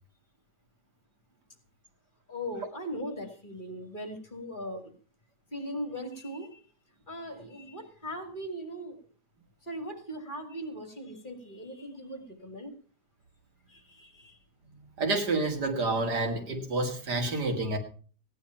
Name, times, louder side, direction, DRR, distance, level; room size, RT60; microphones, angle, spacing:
voice 1, 2.3-4.9 5.5-6.6 7.1-9.0 9.6-12.7 13.7-14.4, equal, 30° left, 6 dB, 2.5 m, -39 dB
voice 2, 15.0-17.8, right 2 dB, 80° right, 4 dB, 2.8 m, -29 dB
16.0 x 10.0 x 5.7 m, 0.41 s
omnidirectional pair, 1.7 m